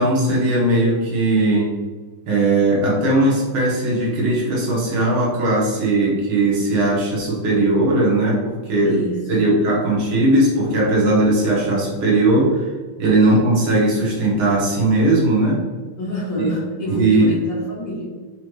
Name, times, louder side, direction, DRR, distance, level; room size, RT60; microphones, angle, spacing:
voice 1, 0.0-1.7 2.3-9.0 9.3-12.7 13.0-15.7 16.4-16.5 16.9-17.3, right 2 dB, 90° right, -5 dB, 2.0 m, -18 dB
voice 2, 8.8-9.6 16.0-18.3, left 1 dB, 70° left, -9 dB, 1.5 m, -27 dB
5.0 x 2.3 x 3.1 m, 1.4 s
omnidirectional pair, 2.2 m